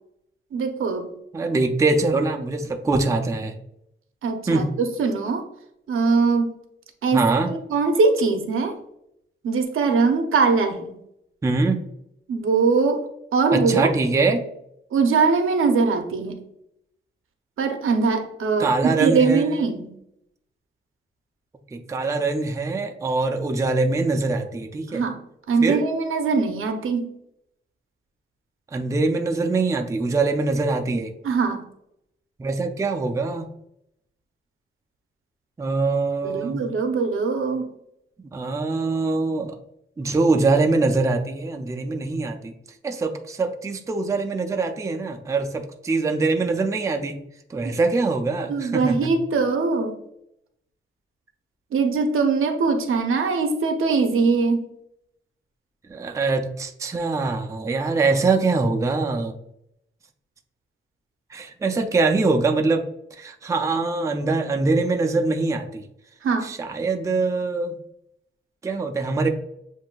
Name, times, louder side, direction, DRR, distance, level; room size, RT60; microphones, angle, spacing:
voice 1, 0.5-1.1 4.2-5.5 5.9-6.5 7.0-8.8 9.4-10.9 12.3-13.1 13.3-13.9 14.9-16.4 17.6-18.7 19.0-19.9 24.9-25.2 25.5-27.1 31.2-31.6 36.2-37.7 48.5-49.9 51.7-54.6 66.2-66.5, right 4 dB, 80° right, 6 dB, 0.7 m, -21 dB
voice 2, 1.3-3.6 4.5-4.7 7.1-7.5 11.4-11.8 13.5-14.4 18.6-19.6 21.7-25.0 25.6-25.9 28.7-31.1 32.4-33.5 35.6-36.6 38.2-39.6 40.0-42.5 42.8-47.2 47.5-49.1 55.9-59.3 61.3-62.8 63.2-65.8 66.4-67.8 68.6-69.3, right 3 dB, 15° right, 4 dB, 0.4 m, -23 dB
7.4 x 2.6 x 2.3 m, 0.78 s
wide cardioid pair, 160°, 21 cm